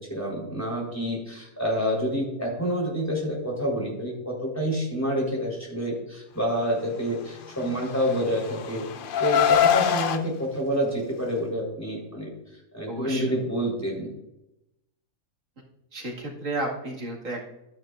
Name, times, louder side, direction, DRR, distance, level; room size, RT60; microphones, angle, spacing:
voice 1, 0.1-8.8 9.2-12.3 12.7-14.1, equal, 10° left, -4 dB, 3.8 m, -28 dB
Car, 7.7-10.2, left 9 dB, 60° left, 0.5 m, -23 dB
voice 2, 12.9-13.3 15.9-17.5, right 2 dB, 60° right, -2 dB, 2.3 m, -32 dB
12.0 x 10.0 x 2.5 m, 0.90 s
omnidirectional pair, 1.5 m